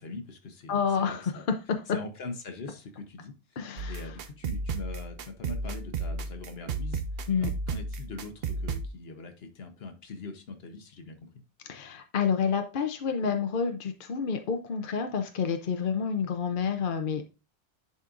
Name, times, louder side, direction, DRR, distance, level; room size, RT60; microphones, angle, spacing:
voice 1, 0.0-1.4 1.9-11.3, left 3 dB, 75° left, 7 dB, 1.2 m, -42 dB
voice 2, 0.7-1.4 1.7-1.8 3.6-4.0 7.3-7.5 11.7-17.3, left 6 dB, 60° left, 6 dB, 0.8 m, -29 dB
sound 1, 3.8-8.9, right 4 dB, 65° right, 0.8 m, -33 dB
10.5 x 4.3 x 2.5 m, 0.31 s
omnidirectional pair, 1.1 m